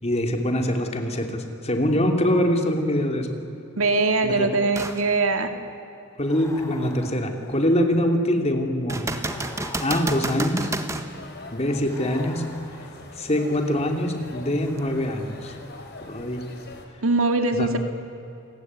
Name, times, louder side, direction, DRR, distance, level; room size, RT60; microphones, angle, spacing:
voice 1, 0.0-3.3 4.2-4.5 6.2-9.1 9.8-10.7 11.5-12.4 13.2-15.5 16.0-16.4 17.5-17.7, left 1 dB, 30° left, 4 dB, 2.8 m, -24 dB
voice 2, 3.8-5.5 17.0-17.8, right 3 dB, 75° right, 6 dB, 2.3 m, -22 dB
sound 1, 4.8-5.0 5.6-5.7 8.9-11.1 14.8-14.9, right 2 dB, 15° right, 1.5 m, -29 dB
sound 2, 6.2-8.0 9.2-10.8 11.9-13.2 14.6-15.7, left 1 dB, 15° left, 3.7 m, -45 dB
sound 3, 11.1-16.9, left 2 dB, 50° left, 3.5 m, -43 dB
29.0 x 20.0 x 9.6 m, 2.9 s
head